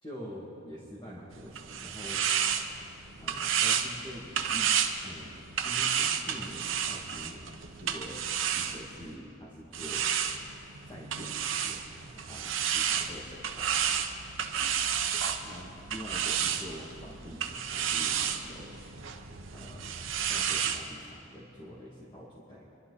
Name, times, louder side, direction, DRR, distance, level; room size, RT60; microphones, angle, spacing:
voice 1, 0.0-2.2 3.2-4.3 4.5-4.7 5.0-8.2 8.6-10.1 10.9-11.8 12.1-13.9 14.5-14.7 15.4-18.8 19.3-19.9 20.2-22.7, equal, 25° left, -6 dB, 2.3 m, -46 dB
sound 1, 1.3-9.1 9.7-20.8, right 8 dB, 85° right, 1.0 m, -31 dB
27.5 x 12.5 x 4.2 m, 2.7 s
head